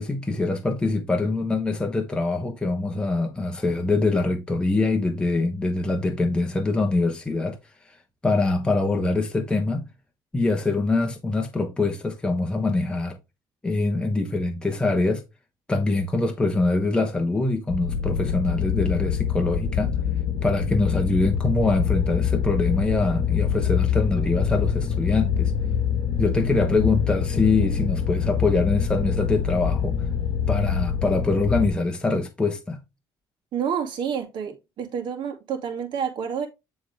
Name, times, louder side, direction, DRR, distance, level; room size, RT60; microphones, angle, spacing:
voice 1, 0.0-7.6 7.9-8.0 8.2-9.8 10.3-13.2 13.6-15.2 15.7-19.9 20.4-25.5 26.2-30.0 30.5-32.8, left 3 dB, 10° left, 1.2 m, -24 dB
sound 1, 17.7-31.7, left 8 dB, 60° left, 1.3 m, -25 dB
voice 2, 33.5-36.5, right 7 dB, 65° right, 2.1 m, -29 dB
9.4 x 3.9 x 3.4 m
cardioid pair, 110°, 9 cm